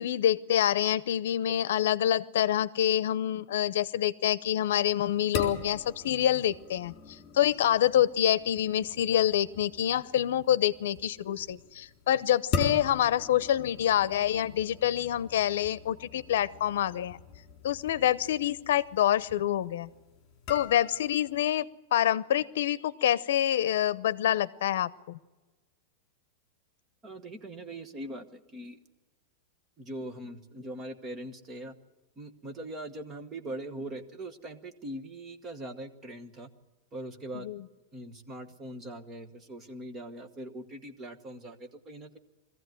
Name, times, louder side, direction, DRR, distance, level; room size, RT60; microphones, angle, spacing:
voice 1, 0.0-17.2 17.6-19.9 20.5-25.2 37.3-37.7, left 11 dB, 65° left, 18 dB, 0.8 m, -27 dB
sound 1, 4.7-21.4, left 5 dB, 25° left, 3.8 m, -41 dB
voice 2, 27.0-28.8 29.8-31.7 32.2-36.5 36.9-37.5 37.9-42.2, right 1 dB, 15° right, 8 dB, 1.2 m, -41 dB
21.5 x 15.0 x 9.2 m, 1.2 s
supercardioid pair, 175°, 0 cm